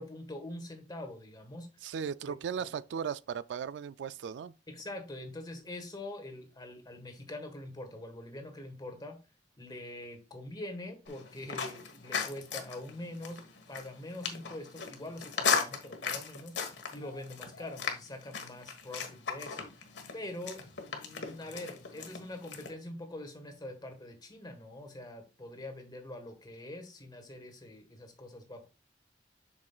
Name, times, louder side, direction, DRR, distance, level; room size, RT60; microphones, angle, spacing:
voice 1, 0.0-1.9 2.2-2.7 4.7-9.2 9.6-16.6 16.9-19.7 20.1-28.7, left 1 dB, 25° left, 1.5 m, -44 dB
voice 2, 1.8-4.5, right 7 dB, 80° right, 0.3 m, -37 dB
sound 1, 11.1-22.7, left 6 dB, 80° left, 1.4 m, -37 dB
7.3 x 6.2 x 2.4 m
head